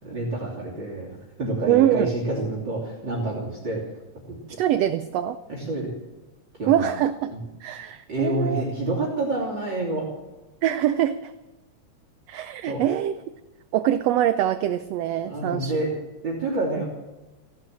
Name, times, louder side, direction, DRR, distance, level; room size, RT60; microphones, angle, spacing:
voice 1, 0.0-3.8 4.3-4.4 5.5-5.9 6.6-6.9 7.3-7.4 8.1-10.1 12.7-12.8 15.3-15.9 16.2-16.8, right 2 dB, 35° right, -2 dB, 3.6 m, -28 dB
voice 2, 1.7-2.1 4.6-5.4 6.7-7.3 7.6-8.6 10.6-11.3 12.3-13.1 13.7-15.7 16.8-16.9, right 11 dB, 75° right, 12 dB, 1.5 m, -23 dB
16.5 x 12.0 x 7.5 m, 1.1 s
omnidirectional pair, 3.4 m